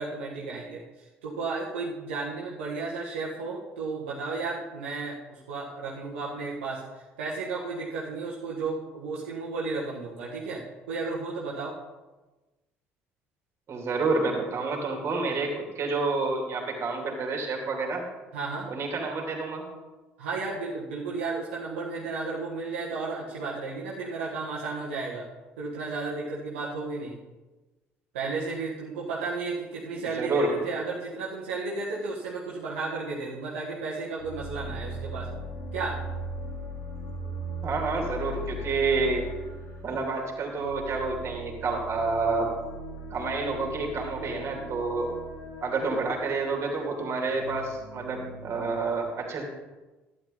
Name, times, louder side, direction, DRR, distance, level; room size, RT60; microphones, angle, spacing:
voice 1, 0.0-11.7 18.3-18.7 20.2-25.3 25.6-27.2 28.1-35.3 35.7-36.0, right 3 dB, 75° right, -5 dB, 1.5 m, -33 dB
voice 2, 13.7-18.0 18.7-19.6 30.0-30.6 37.6-39.3 39.8-42.5 43.1-45.1 45.6-49.4, right 3 dB, 40° right, 1 dB, 3.0 m, -29 dB
sound 1, 34.2-48.9, right 1 dB, 60° left, 3.2 m, -39 dB
12.0 x 9.8 x 4.0 m, 1.1 s
figure-of-eight pair, 55°, 7 cm